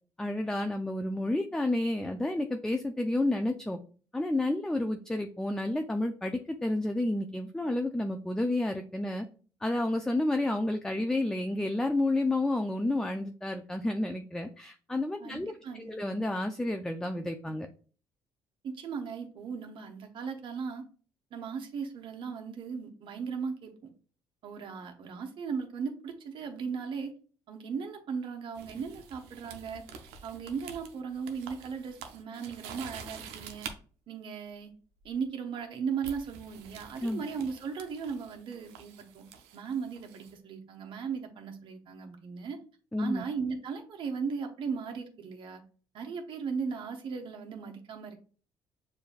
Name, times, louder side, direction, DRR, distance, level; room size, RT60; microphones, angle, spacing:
voice 1, 0.2-3.8 4.1-9.3 9.6-15.5 15.8-17.7 37.0-37.2 42.9-43.2, left 1 dB, 5° left, 6 dB, 0.4 m, -30 dB
voice 2, 15.2-16.0 18.6-20.8 21.3-23.9 24.4-27.1 27.5-29.8 30.2-33.7 34.1-34.7 35.0-39.2 39.5-42.6 43.0-45.6 45.9-48.2, right 5 dB, 60° right, 4 dB, 0.9 m, -37 dB
sound 1, 28.5-33.8 35.0-35.3 36.0-40.3, right 6 dB, 90° right, 0.6 m, -47 dB
6.7 x 2.6 x 2.4 m, 0.40 s
supercardioid pair, 75°, 10 cm